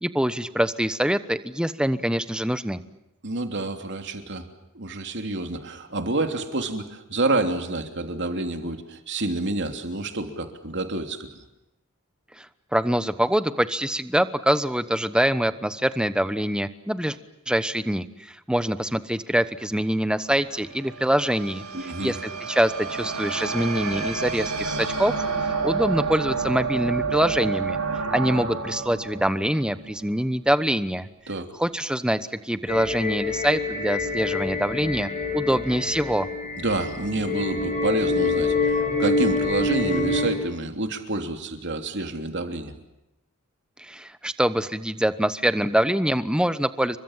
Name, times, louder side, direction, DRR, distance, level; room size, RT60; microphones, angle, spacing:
voice 1, 0.0-2.8 12.4-12.5 12.7-17.2 17.5-27.8 28.1-31.1 31.6-36.3 43.8-47.0, equal, 5° right, 12 dB, 1.0 m, -24 dB
voice 2, 3.2-4.5 4.7-11.3 21.7-22.1 31.3-31.5 36.6-42.7, right 2 dB, 55° right, 5 dB, 3.1 m, -28 dB
sound 1, 20.2-30.5, right 4 dB, 80° right, 7.3 m, -30 dB
sound 2, 32.7-40.3, left 3 dB, 30° left, 6.2 m, -26 dB
29.5 x 24.0 x 7.4 m, 0.89 s
head